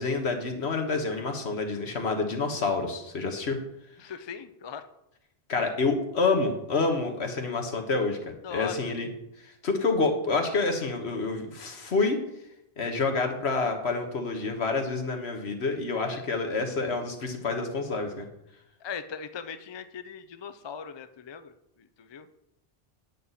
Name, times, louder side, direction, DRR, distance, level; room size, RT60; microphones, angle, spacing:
voice 1, 0.0-3.6 5.5-8.2 8.5-9.1 9.6-12.2 12.8-18.2, left 3 dB, 80° left, 4 dB, 1.6 m, -28 dB
voice 2, 4.0-4.9 8.4-8.9 16.1-16.2 18.8-22.3, left 7 dB, 35° left, 10 dB, 0.4 m, -40 dB
9.3 x 8.6 x 4.1 m, 0.84 s
omnidirectional pair, 1.1 m